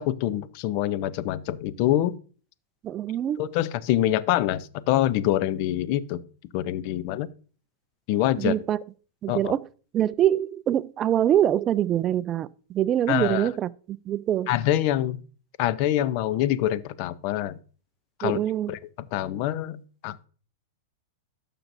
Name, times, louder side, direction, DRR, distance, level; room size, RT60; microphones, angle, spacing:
voice 1, 0.0-2.1 3.4-6.2 6.5-7.3 8.1-8.5 9.3-9.5 13.1-13.5 14.5-15.2 15.6-17.6 18.2-18.4 18.7-18.8 19.1-20.3, left 13 dB, 50° left, 0.6 m, -25 dB
voice 2, 2.8-3.4 8.4-8.8 9.2-9.6 9.9-14.5 18.2-18.7, right 11 dB, 30° right, 0.3 m, -24 dB
12.0 x 6.7 x 2.6 m
hypercardioid pair, 130°, 0 cm